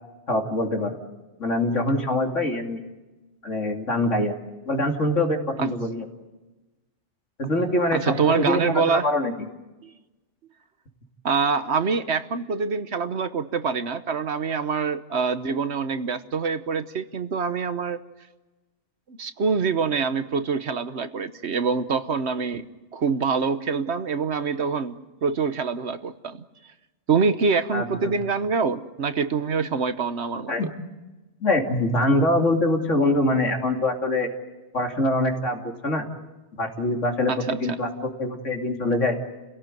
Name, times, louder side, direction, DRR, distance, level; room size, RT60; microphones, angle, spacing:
voice 1, 0.3-1.0 1.4-2.8 3.4-4.3 4.7-6.0 7.4-9.5 27.7-28.1 30.5-30.7 31.4-34.3 34.7-36.1 36.6-39.2, left 1 dB, 90° left, 3 dB, 3.1 m, -24 dB
voice 2, 7.9-9.1 9.8-9.9 11.2-18.0 19.1-22.7 22.9-26.4 27.1-30.7 37.3-37.6, right 5 dB, 65° right, 11 dB, 1.3 m, -25 dB
29.5 x 17.5 x 9.2 m, 1.1 s
omnidirectional pair, 1.2 m